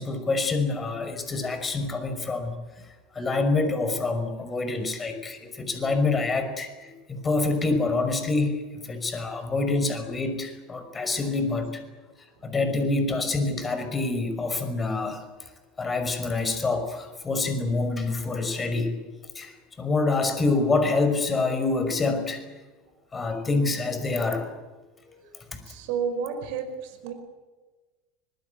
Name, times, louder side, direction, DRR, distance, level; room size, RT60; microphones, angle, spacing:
voice 1, 0.0-2.9 3.1-11.8 12.4-15.3 15.8-19.1 19.3-22.4 23.1-24.5 25.5-25.6, left 3 dB, 25° left, 9 dB, 5.6 m, -26 dB
voice 2, 25.7-27.1, right 6 dB, 65° right, 7 dB, 5.2 m, -31 dB
26.0 x 20.0 x 8.2 m, 1.3 s
hypercardioid pair, 80°, 0 cm